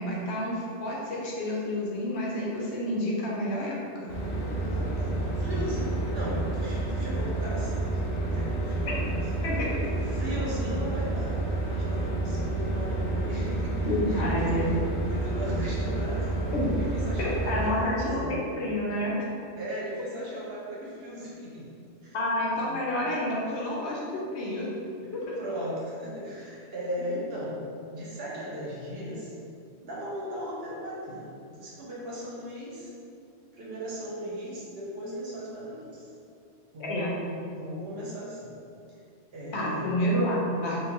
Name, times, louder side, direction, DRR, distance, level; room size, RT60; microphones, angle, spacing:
voice 1, 0.0-4.1 8.8-8.9 9.4-9.7 13.8-14.7 16.5-16.6 17.2-19.1 22.1-24.7 25.1-25.3 36.8-37.1 39.5-40.8, left 1 dB, 75° left, -4 dB, 1.0 m, -29 dB
sound 1, 4.1-17.7, right 2 dB, 45° left, 0.6 m, -29 dB
voice 2, 4.6-9.2 10.1-14.8 15.1-18.4 19.5-21.7 22.0-22.2 22.5-22.7 25.0-27.6 27.9-29.3 29.8-32.9 33.5-36.1 36.7-38.5 39.3-39.9, equal, 65° right, -6 dB, 1.0 m, -37 dB
3.7 x 2.5 x 2.9 m, 2.5 s
omnidirectional pair, 1.2 m